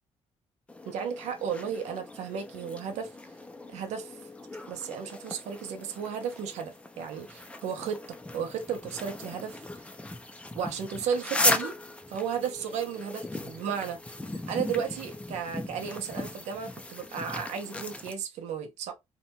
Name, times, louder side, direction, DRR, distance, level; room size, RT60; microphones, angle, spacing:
sound 1, 0.7-18.1, left 2 dB, 10° left, 0.4 m, -37 dB
voice 1, 0.8-3.1 3.7-4.2 4.7-8.0 8.3-9.6 10.5-11.8 12.1-14.0 14.5-18.9, right 7 dB, 90° right, 0.6 m, -34 dB
2.7 x 2.2 x 2.7 m
cardioid pair, 105°, 11 cm